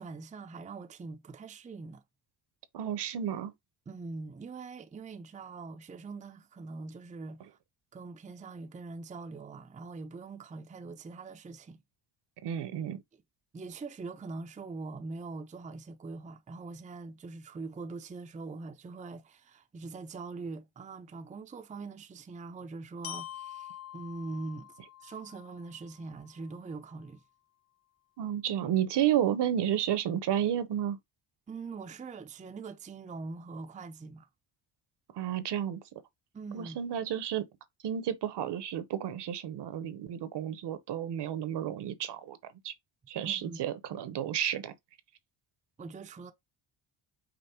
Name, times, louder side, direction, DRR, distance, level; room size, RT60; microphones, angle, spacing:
voice 1, 0.0-2.0 3.9-7.6 7.9-11.8 13.5-27.2 31.5-34.3 36.3-36.8 43.2-43.6 45.8-46.3, right 3 dB, 15° right, 0.5 m, -43 dB
voice 2, 2.7-3.5 12.4-13.0 28.2-31.0 35.1-35.8 36.5-37.5 37.8-42.4 42.6-42.7 43.1-44.7, right 10 dB, 55° right, 0.9 m, -31 dB
Glockenspiel, 23.0-27.0, left 11 dB, 45° left, 1.1 m, -46 dB
5.2 x 2.1 x 4.2 m
cardioid pair, 90°, 48 cm